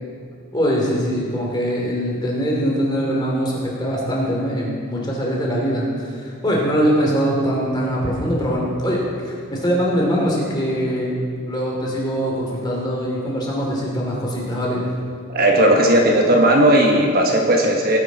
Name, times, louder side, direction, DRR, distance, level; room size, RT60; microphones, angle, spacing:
voice 1, 0.5-11.1 11.5-14.8, equal, 20° left, -3 dB, 2.7 m, -22 dB
voice 2, 15.3-18.0, right 1 dB, 40° right, 1 dB, 1.2 m, -16 dB
18.5 x 10.5 x 4.0 m, 2.4 s
head